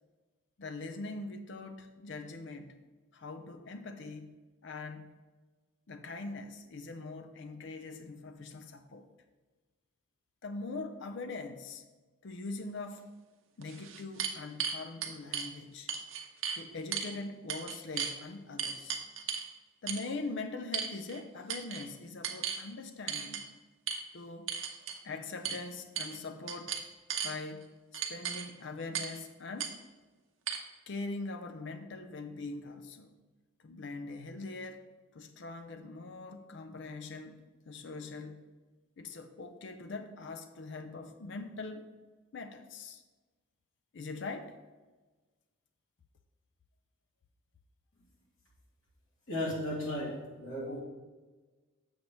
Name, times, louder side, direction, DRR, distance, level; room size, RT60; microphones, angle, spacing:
voice 1, 0.6-2.8 3.1-4.3 4.6-5.1 5.9-9.1 10.4-11.8 12.2-13.1 13.6-15.9 16.5-19.0 19.8-23.5 24.1-24.5 25.0-26.8 27.2-27.7 27.9-29.8 30.9-33.2 33.6-34.8 35.1-37.4 37.7-38.4 39.0-41.9 42.3-43.0 43.9-44.6, left 3 dB, 60° left, 7 dB, 0.5 m, -42 dB
sound 1, 13.0-13.1 13.6-15.5 15.9-16.6 16.9-17.1 17.5-18.2 18.6-19.5 19.9-20.1 20.7-21.2 21.5-21.8 22.2-22.6 23.1-23.4 23.9-24.0 24.5-25.0 25.4-25.6 26.0-26.2 26.5-27.3 27.9-28.5 28.9-29.2 29.6-29.7 30.5-30.6, right 7 dB, 70° right, 0.7 m, -35 dB
voice 2, 49.3-50.8, left 1 dB, 85° left, -4 dB, 2.4 m, -35 dB
7.1 x 6.5 x 3.1 m, 1.3 s
head